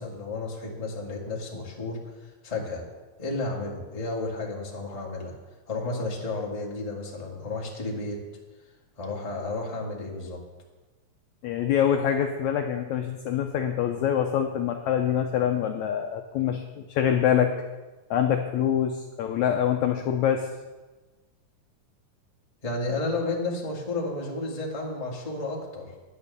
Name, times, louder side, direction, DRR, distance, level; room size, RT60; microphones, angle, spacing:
voice 1, 0.0-2.8 3.2-5.3 5.7-8.2 9.0-10.4 22.6-25.9, left 2 dB, 15° left, -2 dB, 1.4 m, -32 dB
voice 2, 11.4-17.5 18.1-20.5, left 9 dB, 75° left, 4 dB, 1.7 m, -25 dB
10.5 x 9.8 x 6.8 m, 1.2 s
omnidirectional pair, 3.9 m